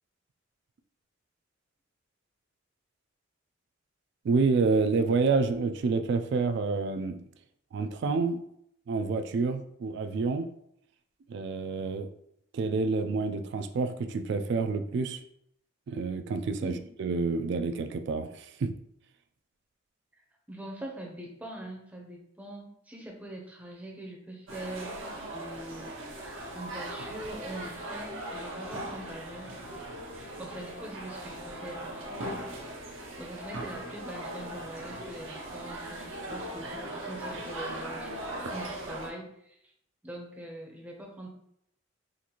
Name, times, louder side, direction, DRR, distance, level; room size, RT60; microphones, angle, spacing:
voice 1, 4.2-7.2 7.7-8.4 8.9-10.5 11.3-12.1 12.5-15.2 15.9-18.7, right 4 dB, 60° right, 9 dB, 0.3 m, -28 dB
voice 2, 20.2-25.1 25.3-25.9 26.5-29.5 30.1-32.5 33.2-38.1 38.5-39.6 40.0-41.3, right 1 dB, 10° right, 0 dB, 0.5 m, -43 dB
sound 1, 24.5-39.1, right 1 dB, 80° right, 0.7 m, -39 dB
3.8 x 2.4 x 2.9 m, 0.73 s
head